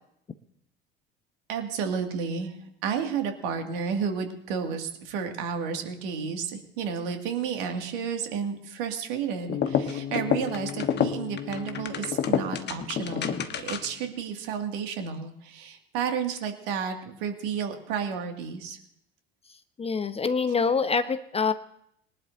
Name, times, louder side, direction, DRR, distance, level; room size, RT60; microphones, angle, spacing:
voice 1, 1.5-2.5 2.8-18.8, right 6 dB, 60° right, 4 dB, 2.3 m, -31 dB
sound 1, 9.4-14.1, left 8 dB, 35° left, 1.3 m, -29 dB
voice 2, 19.8-21.5, left 5 dB, 20° left, 12 dB, 0.8 m, -25 dB
22.5 x 11.5 x 2.7 m, 0.76 s
figure-of-eight pair, 65°, 30 cm